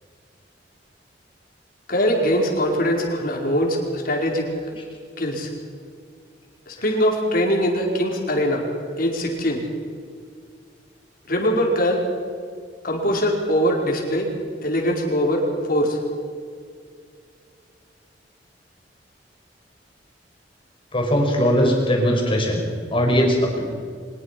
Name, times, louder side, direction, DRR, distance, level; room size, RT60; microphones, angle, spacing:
voice 1, 1.9-4.5 5.2-5.5 6.7-8.7 9.0-9.6 11.3-12.0 12.8-14.3 14.6-16.0, equal, 55° left, 0 dB, 4.7 m, -22 dB
voice 2, 20.9-23.6, equal, 30° left, 1 dB, 5.6 m, -20 dB
24.0 x 21.0 x 5.9 m, 2.2 s
head